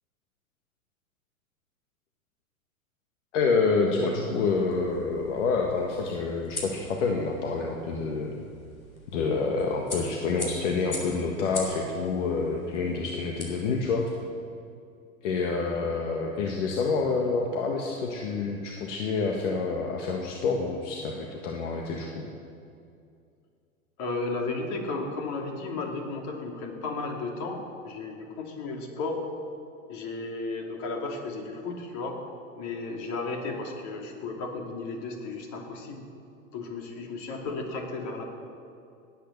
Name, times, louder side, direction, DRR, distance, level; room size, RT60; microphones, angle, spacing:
voice 1, 3.3-8.3 9.1-14.1 15.2-22.2, left 4 dB, 60° left, 1 dB, 1.8 m, -28 dB
sound 1, 4.3-14.2, left 2 dB, 85° left, 3.8 m, -42 dB
voice 2, 24.0-29.2 29.9-32.2 32.6-36.0 36.5-38.2, left 3 dB, 45° left, 1 dB, 3.1 m, -34 dB
18.5 x 9.2 x 6.8 m, 2.4 s
figure-of-eight pair, 95°, 41 cm